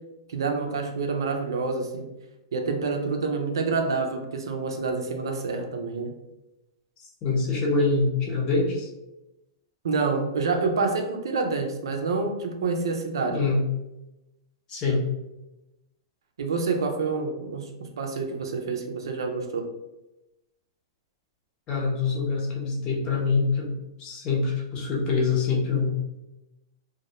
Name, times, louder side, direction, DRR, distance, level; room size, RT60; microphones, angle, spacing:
voice 1, 0.3-2.1 2.5-6.1 9.8-13.4 16.4-17.7 18.0-19.7, right 4 dB, 80° right, 4 dB, 0.4 m, -27 dB
voice 2, 7.2-8.9 13.3-13.6 14.7-15.0 21.7-23.7 24.0-26.0, left 4 dB, 35° left, -2 dB, 0.8 m, -25 dB
2.2 x 2.0 x 2.8 m, 0.95 s
hypercardioid pair, 120°, 2 cm